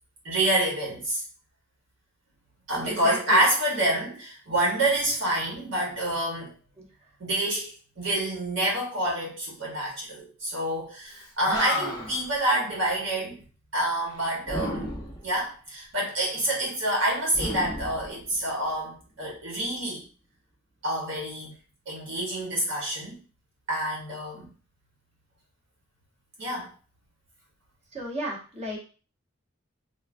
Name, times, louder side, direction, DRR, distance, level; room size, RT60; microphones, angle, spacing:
voice 1, 0.2-1.2 2.7-6.5 7.2-13.4 13.7-14.9 15.2-20.0 20.8-21.5 21.9-23.2 23.7-24.5 26.4-26.7, right 1 dB, 65° right, -3 dB, 1.0 m, -27 dB
voice 2, 2.8-3.4 6.8-6.9 27.9-28.8, equal, 30° right, -2 dB, 0.7 m, -34 dB
Animal, 11.1-11.2 11.4-12.3 14.4-15.3 17.3-18.6, left 1 dB, 20° left, 0.6 m, -32 dB
3.2 x 2.2 x 2.4 m, 0.37 s
head